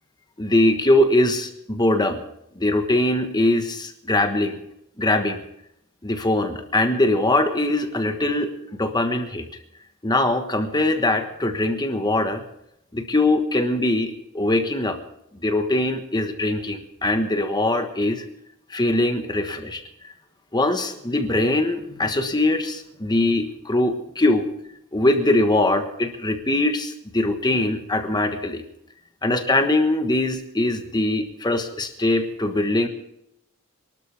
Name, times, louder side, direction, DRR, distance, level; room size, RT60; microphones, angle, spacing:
voice 1, 0.4-2.2 2.6-4.6 5.0-5.4 6.0-8.5 8.8-9.4 10.0-12.4 12.9-15.0 15.4-18.2 18.7-19.8 20.5-24.5 24.9-28.6 29.2-32.9, left 1 dB, 20° left, 6 dB, 1.3 m, -22 dB
23.5 x 13.0 x 3.5 m, 0.77 s
head